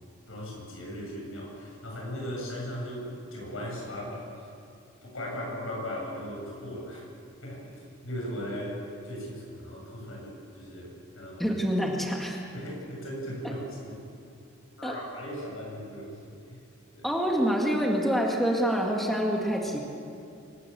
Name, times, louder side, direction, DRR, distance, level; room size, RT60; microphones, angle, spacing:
voice 1, 0.3-4.3 5.0-7.0 7.4-11.5 12.5-14.0 14.8-16.6 16.9-17.1, equal, 85° left, -2 dB, 7.8 m, -38 dB
voice 2, 11.4-12.4 14.8-14.9 17.0-19.8, equal, ahead, -1 dB, 2.1 m, -26 dB
25.0 x 17.0 x 7.1 m, 2.6 s
head